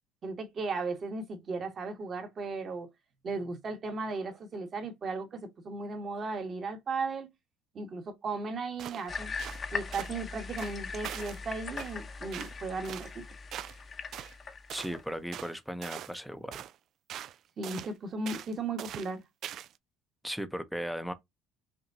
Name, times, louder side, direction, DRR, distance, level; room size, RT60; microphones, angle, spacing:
voice 1, 0.2-2.9 3.2-7.3 7.7-9.3 9.7-13.2 17.6-19.2, right 3 dB, 40° right, 1.3 m, -36 dB
sound 1, 8.8-9.1 9.4-9.6 9.9-10.1 10.6-11.4 11.8-12.0 12.3-12.6 12.8-13.1 13.5-13.8 14.1-14.3 14.7-14.9 15.3-15.5 15.8-16.2 16.5-16.8 17.1-17.4 17.6-17.9 18.3-18.5 18.8-19.1 19.4-19.8, right 11 dB, 55° right, 0.3 m, -42 dB
sound 2, 9.1-15.0, left 4 dB, 30° left, 0.8 m, -40 dB
voice 2, 14.7-16.6 20.2-21.1, equal, ahead, 0.7 m, -37 dB
5.8 x 2.2 x 2.7 m
supercardioid pair, 100°, 0 cm